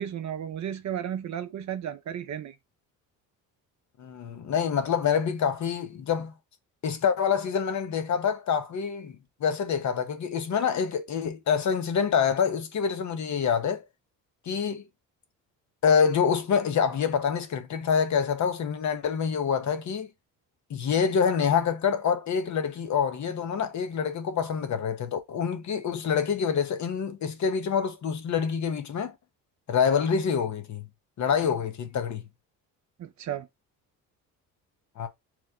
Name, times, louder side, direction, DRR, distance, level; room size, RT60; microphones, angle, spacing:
voice 1, 0.0-2.6 33.0-33.5, right 9 dB, 45° right, 0.6 m, -34 dB
voice 2, 4.0-6.3 6.8-9.1 9.4-13.8 14.5-14.8 15.8-20.1 20.7-29.1 29.7-30.8 31.2-32.2 35.0-35.1, left 7 dB, 45° left, 0.7 m, -26 dB
3.0 x 2.1 x 3.5 m
supercardioid pair, 70°, 40 cm